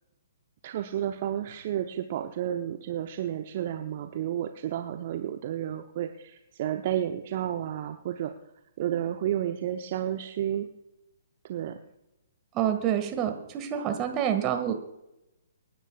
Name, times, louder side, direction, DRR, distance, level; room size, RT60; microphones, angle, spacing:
voice 1, 0.6-8.3 8.8-10.7 11.5-11.8, right 11 dB, 45° right, 6 dB, 0.8 m, -31 dB
voice 2, 12.5-14.7, right 10 dB, 25° right, 6 dB, 1.8 m, -27 dB
27.5 x 10.0 x 2.4 m, 0.89 s
figure-of-eight pair, 125°, 0 cm